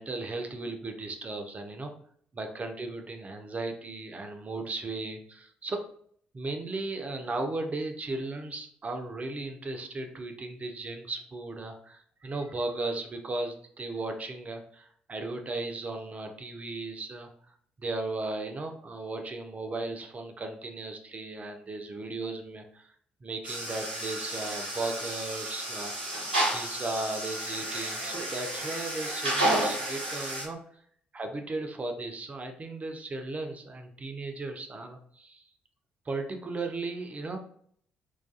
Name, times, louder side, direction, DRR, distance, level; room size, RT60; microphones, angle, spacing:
voice 1, 0.0-1.9 2.3-5.8 6.3-22.9 23.2-25.9 26.5-30.6 31.1-35.5 36.1-37.4, right 2 dB, 30° right, 4 dB, 0.4 m, -36 dB
sound 1, 23.4-30.4, right 1 dB, 90° right, 0.6 m, -31 dB
2.3 x 2.2 x 2.5 m, 0.62 s
figure-of-eight pair, 45°, 5 cm